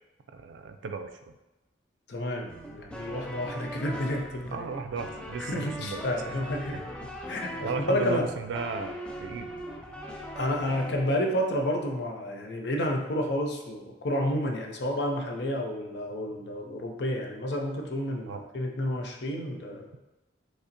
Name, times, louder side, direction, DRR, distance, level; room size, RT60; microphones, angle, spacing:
voice 1, 0.3-1.1 4.5-6.4 6.7-6.8 7.6-8.9 9.2-9.5 18.3-18.4, right 4 dB, 80° right, 7 dB, 0.3 m, -35 dB
voice 2, 2.1-4.7 5.4-6.8 7.3-8.3 10.4-19.9, left 1 dB, 65° left, 2 dB, 0.5 m, -30 dB
sound 1, 2.5-11.0, equal, 5° left, 0.3 m, -40 dB
5.1 x 2.0 x 2.5 m, 1.0 s
head